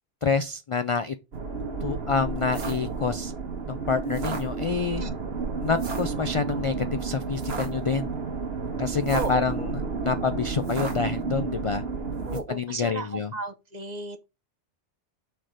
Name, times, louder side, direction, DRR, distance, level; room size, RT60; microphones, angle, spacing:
voice 1, 0.2-1.1 1.8-3.3 3.7-5.0 5.6-8.1 8.8-11.8 12.3-13.3, left 5 dB, 50° left, 0.3 m, -27 dB
sound 1, 1.3-12.4, right 4 dB, 60° right, 1.5 m, -31 dB
voice 2, 9.1-9.7 12.2-14.2, right 4 dB, 40° right, 0.9 m, -34 dB
6.3 x 4.6 x 4.9 m
omnidirectional pair, 1.2 m